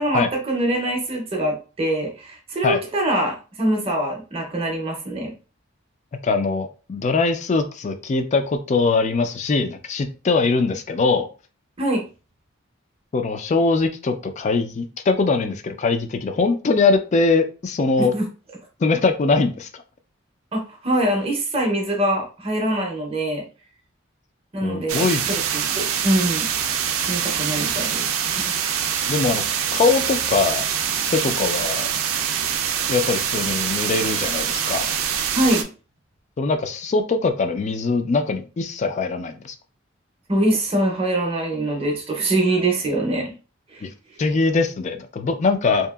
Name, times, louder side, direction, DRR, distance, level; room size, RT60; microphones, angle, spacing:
voice 1, 0.0-5.3 11.8-12.0 18.1-18.2 20.5-23.4 24.5-26.5 27.0-28.1 28.4-28.5 35.3-35.7 40.3-43.3 43.7-43.8, right 1 dB, 30° right, 1 dB, 0.6 m, -23 dB
voice 2, 6.2-11.3 13.1-18.1 18.8-19.8 24.6-25.2 29.1-29.4 29.7-30.6 31.1-31.9 32.9-34.9 36.4-39.6 43.8-43.9 44.2-45.9, left 4 dB, 35° left, 8 dB, 0.3 m, -22 dB
sound 1, 24.9-35.6, right 8 dB, 85° right, 0.4 m, -24 dB
2.8 x 2.4 x 2.3 m, 0.34 s
head